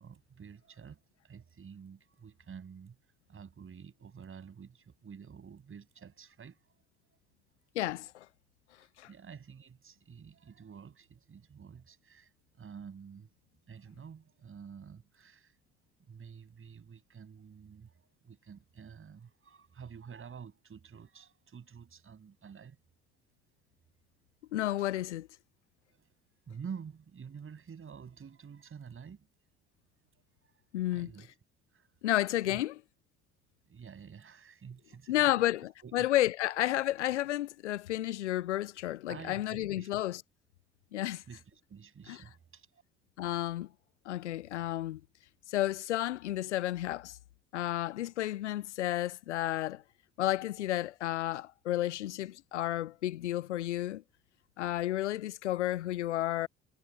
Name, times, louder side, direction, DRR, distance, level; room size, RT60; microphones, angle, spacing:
voice 1, 0.0-3.0 3.3-6.7 8.8-13.3 13.7-15.6 16.1-22.8 25.9-26.1 26.5-29.3 30.9-31.3 31.7-32.0 32.4-32.6 33.7-35.3 35.8-36.1 39.1-39.9 41.3-42.8, right 6 dB, 35° right, 7.7 m, -49 dB
voice 2, 7.8-8.3 9.0-9.1 24.5-25.3 30.7-31.1 32.0-32.7 35.1-40.2 40.9-41.2 42.1-42.2 43.2-43.7 44.1-45.0 45.5-47.2 47.5-49.8 50.2-54.0 54.6-56.5, left 14 dB, 80° left, 0.5 m, -32 dB
figure-of-eight pair, 50°, 34 cm